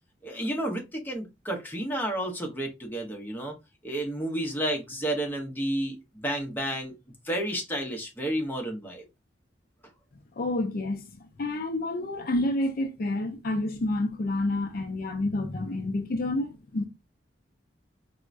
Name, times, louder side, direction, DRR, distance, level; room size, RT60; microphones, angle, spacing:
voice 1, 0.2-3.6 3.8-6.9 7.2-9.0, right 1 dB, 10° left, 0.8 m, -31 dB
voice 2, 10.4-16.9, left 2 dB, 55° left, 0.5 m, -29 dB
4.4 x 2.1 x 2.5 m
head